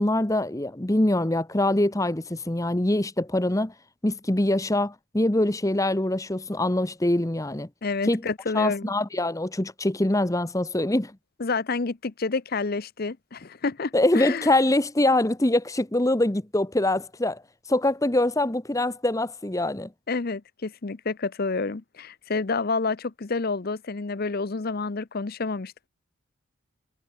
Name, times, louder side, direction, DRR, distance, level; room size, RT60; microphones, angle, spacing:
voice 1, 0.0-3.7 4.0-7.7 8.0-8.2 8.5-11.1 13.9-17.4 17.7-19.9, left 1 dB, 15° left, 0.9 m, -24 dB
voice 2, 7.8-8.9 11.4-14.5 20.1-25.9, left 4 dB, 45° left, 0.7 m, -29 dB
head